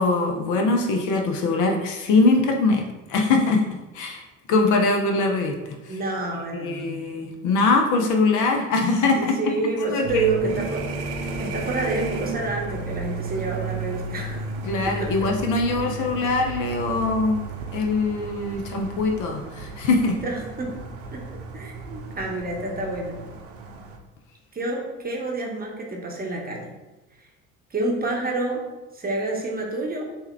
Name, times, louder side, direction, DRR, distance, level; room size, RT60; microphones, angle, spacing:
voice 1, 0.0-2.8 3.1-3.6 3.9-4.2 4.5-5.5 5.8-6.0 6.6-9.4 9.9-10.2 14.7-17.4 17.7-20.1, left 3 dB, 50° left, 2 dB, 0.6 m, -22 dB
voice 2, 5.9-7.0 9.1-14.5 14.9-15.1 20.2-20.7 21.1-23.2 24.5-26.7 27.7-28.6 28.9-30.1, right 2 dB, 20° right, -1 dB, 0.9 m, -28 dB
sound 1, 10.0-24.0, right 3 dB, 60° right, 0.6 m, -33 dB
3.4 x 2.8 x 3.3 m, 1.1 s
figure-of-eight pair, 60°, 40 cm